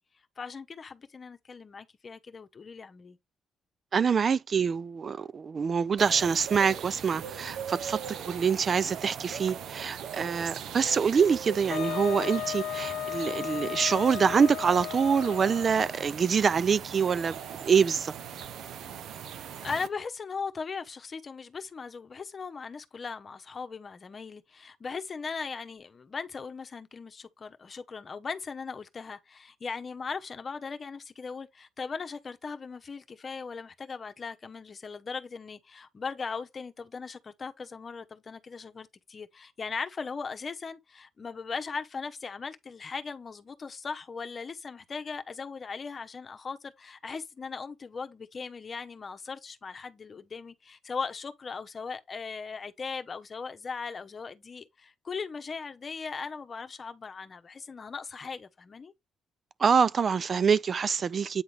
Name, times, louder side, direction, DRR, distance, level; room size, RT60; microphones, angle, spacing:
voice 1, 0.4-3.2 19.6-58.9, left 5 dB, 40° left, 1.0 m, -38 dB
voice 2, 3.9-8.0 8.3-17.4 17.6-18.1 59.6-61.4, right 6 dB, 45° right, 0.4 m, -25 dB
sound 1, 6.0-19.9, right 8 dB, 75° right, 0.8 m, -40 dB
Wind instrument woodwind instrument, 11.7-16.1, left 12 dB, 75° left, 0.3 m, -35 dB
8.8 x 3.9 x 3.3 m
cardioid pair, 90°, 0 cm